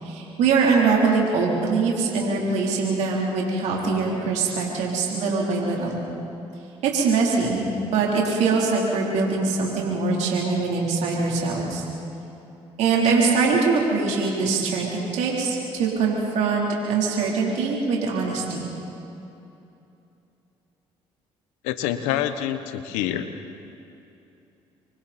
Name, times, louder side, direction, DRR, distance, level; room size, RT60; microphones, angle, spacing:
voice 1, 0.0-6.0 6.8-7.6 7.9-11.8 12.8-18.7, right 4 dB, 75° right, -3 dB, 4.0 m, -23 dB
voice 2, 21.6-23.3, left 11 dB, 90° left, 10 dB, 1.2 m, -26 dB
27.5 x 23.5 x 4.5 m, 2.8 s
supercardioid pair, 70°, 12 cm